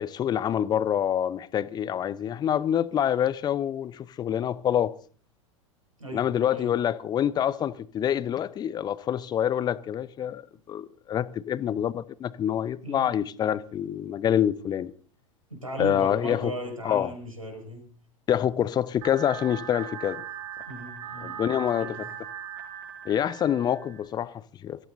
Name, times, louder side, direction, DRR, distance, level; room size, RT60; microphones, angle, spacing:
voice 1, 0.0-4.9 6.1-10.4 10.7-14.9 15.8-16.5 16.8-17.1 18.3-20.2 21.2-21.9 23.0-24.9, left 10 dB, 25° left, 0.8 m, -26 dB
voice 2, 6.0-6.7 12.8-13.2 15.5-17.9 20.7-21.4 21.8-22.1, right 1 dB, 90° right, 5.6 m, -37 dB
sound 1, 19.0-24.0, right 9 dB, 50° right, 5.5 m, -39 dB
25.0 x 15.0 x 2.7 m
figure-of-eight pair, 90°, 17 cm